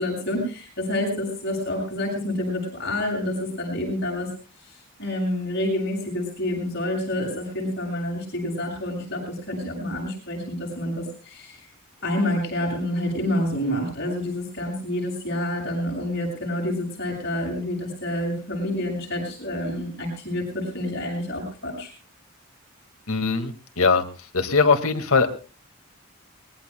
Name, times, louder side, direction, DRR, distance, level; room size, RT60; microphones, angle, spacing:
voice 1, 0.0-4.3 5.0-11.7 12.0-21.9, left 1 dB, 50° left, 1 dB, 7.2 m, -28 dB
voice 2, 23.1-24.0 24.3-25.3, left 4 dB, 80° left, 7 dB, 2.0 m, -20 dB
24.5 x 21.0 x 2.3 m, 0.36 s
head